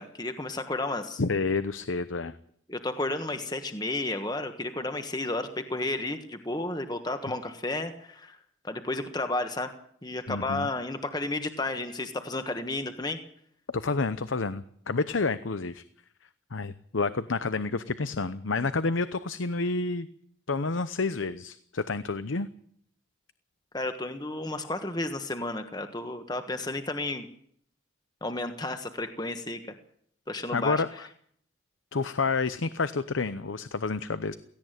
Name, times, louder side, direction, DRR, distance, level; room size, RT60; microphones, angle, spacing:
voice 1, 0.0-1.2 2.7-8.4 8.6-9.7 10.0-13.2 23.7-27.3 28.2-29.7 30.3-31.0, left 2 dB, 20° left, 7 dB, 1.4 m, -32 dB
voice 2, 1.2-2.3 10.3-10.7 13.7-15.8 16.5-20.1 20.5-22.5 30.5-31.1 31.9-34.3, left 3 dB, 85° left, 13 dB, 0.8 m, -29 dB
17.5 x 16.0 x 9.2 m, 0.64 s
head